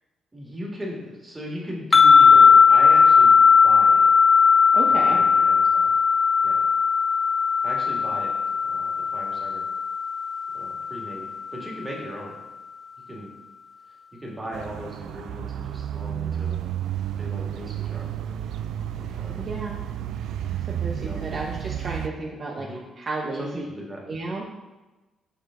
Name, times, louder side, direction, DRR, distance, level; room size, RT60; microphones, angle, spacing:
voice 1, 0.3-3.3 3.6-4.1 4.9-5.9 6.4-6.6 7.6-8.3 8.6-9.7 10.5-12.4 13.1-13.3 14.1-16.6 17.2-18.1 19.0-19.5 20.9-21.4 22.6-22.8 23.4-24.0, equal, 20° right, -3 dB, 1.9 m, -37 dB
sound 1, 1.9-11.2, left 6 dB, 25° left, 0.5 m, -17 dB
voice 2, 4.7-5.2 19.1-19.8 20.5-22.7 23.0-23.7 24.1-24.4, right 3 dB, 45° right, -2 dB, 0.9 m, -32 dB
sound 2, 14.5-22.1, right 10 dB, 80° right, 0.3 m, -31 dB
6.8 x 5.0 x 3.8 m, 1.1 s
cardioid pair, 90°, 0 cm